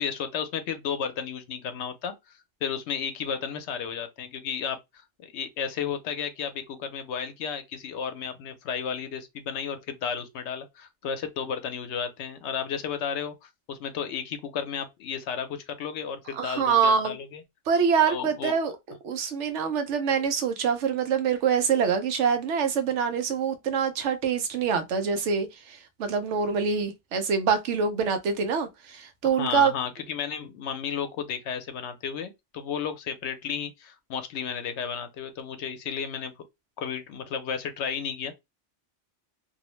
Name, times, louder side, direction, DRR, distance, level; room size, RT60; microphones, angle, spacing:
voice 1, 0.0-17.4 18.1-18.7 29.3-36.3 36.8-38.3, left 7 dB, 75° left, 0.8 m, -33 dB
voice 2, 16.3-17.2 17.7-18.7 19.0-29.7, right 6 dB, 90° right, 0.9 m, -25 dB
2.7 x 2.0 x 3.0 m
omnidirectional pair, 1.2 m